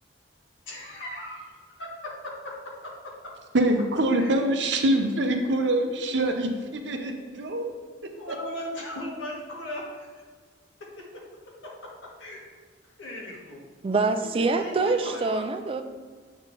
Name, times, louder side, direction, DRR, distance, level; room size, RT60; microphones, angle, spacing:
voice 1, 0.7-2.9 4.2-4.3 8.2-10.2 11.0-11.1 12.2-12.5 13.0-13.6 14.2-15.4, left 1 dB, 85° left, 1.5 m, -38 dB
voice 2, 3.5-7.7 8.3-8.4, right 1 dB, 65° right, 0.7 m, -24 dB
voice 3, 13.8-15.8, right 3 dB, 30° right, 0.3 m, -25 dB
8.0 x 3.6 x 3.7 m
head